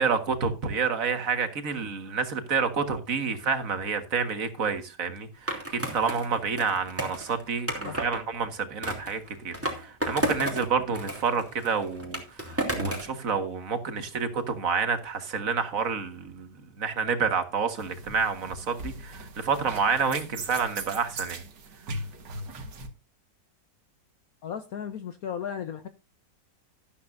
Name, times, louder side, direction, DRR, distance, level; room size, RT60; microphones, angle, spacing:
voice 1, 0.0-12.2 12.7-16.5 16.8-21.4, right 5 dB, 50° right, 1.9 m, -28 dB
Skateboard, 5.5-8.2 8.8-10.7 10.9-13.1, right 1 dB, 5° right, 2.9 m, -32 dB
sound 1, 17.8-22.9, right 2 dB, 80° right, 2.2 m, -39 dB
voice 2, 24.4-25.9, left 8 dB, 60° left, 1.2 m, -35 dB
13.0 x 12.0 x 2.6 m
omnidirectional pair, 1.9 m